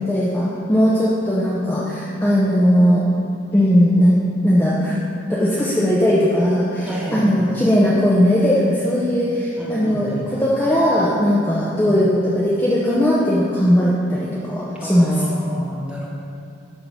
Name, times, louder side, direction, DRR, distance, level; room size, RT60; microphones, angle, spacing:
voice 1, 0.1-3.0 3.5-4.2 4.4-5.0 5.3-15.1, equal, 10° left, -7 dB, 0.8 m, -18 dB
voice 2, 6.8-7.5 9.6-10.3 11.8-11.9 14.8-16.1, equal, 5° right, -6 dB, 1.6 m, -30 dB
11.5 x 3.9 x 6.2 m, 2.5 s
head